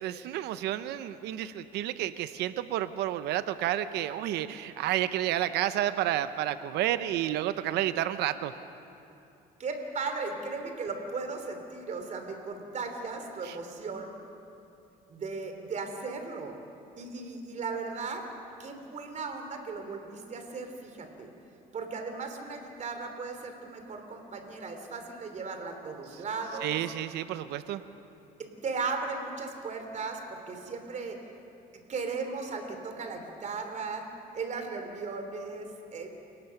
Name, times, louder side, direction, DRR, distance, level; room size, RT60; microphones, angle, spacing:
voice 1, 0.0-8.5 13.4-13.6 26.6-27.8, right 12 dB, 85° right, 12 dB, 0.8 m, -30 dB
voice 2, 9.6-14.1 15.1-16.5 17.0-18.3 18.6-21.3 21.7-26.8 28.6-31.2 31.9-34.1 34.3-36.2, right 4 dB, 45° right, 5 dB, 3.2 m, -36 dB
29.5 x 18.0 x 5.9 m, 2.7 s
cardioid pair, 110°, 17 cm